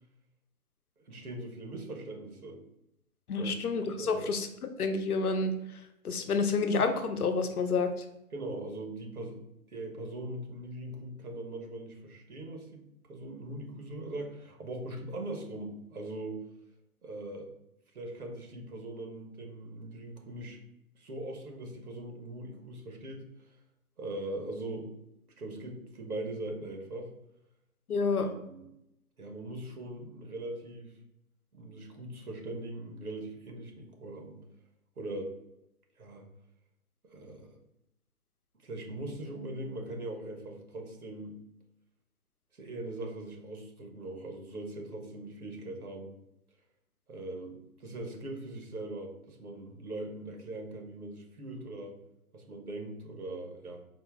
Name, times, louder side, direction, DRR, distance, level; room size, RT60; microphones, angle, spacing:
voice 1, 1.0-2.6 3.3-3.5 3.9-4.3 8.3-9.4 9.7-16.4 17.0-17.5 17.9-20.6 20.9-23.5 24.0-24.9 25.4-27.1 28.2-28.7 29.2-31.0 31.5-34.4 35.0-35.3 36.0-36.2 37.0-37.6 38.6-41.4 42.5-46.2 47.1-52.0 52.3-53.8, right 2 dB, 85° right, 2 dB, 1.3 m, -41 dB
voice 2, 3.3-4.5 4.8-5.5 6.0-7.9 27.9-28.3, left 4 dB, 85° left, 7 dB, 0.7 m, -29 dB
4.3 x 2.1 x 3.6 m, 0.82 s
hypercardioid pair, 155°, 44 cm